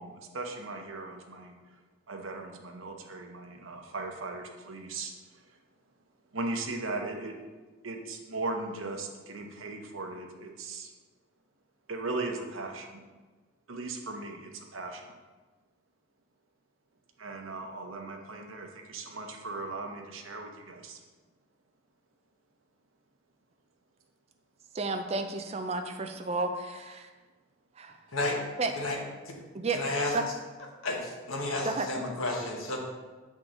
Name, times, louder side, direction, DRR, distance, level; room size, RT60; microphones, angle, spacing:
voice 1, 0.0-1.5 2.1-5.1 6.3-7.5 7.8-10.9 11.9-13.0 13.7-15.1 17.2-21.0, right 3 dB, 75° right, 3 dB, 0.8 m, -38 dB
voice 2, 24.7-27.1 27.8-28.0 28.6-28.7 29.5-29.8 30.1-30.3 31.6-31.9, right 3 dB, 30° right, 6 dB, 0.4 m, -32 dB
voice 3, 29.7-30.1 30.8-32.8, left 2 dB, 85° left, 0 dB, 1.2 m, -31 dB
7.7 x 3.7 x 3.8 m, 1.3 s
head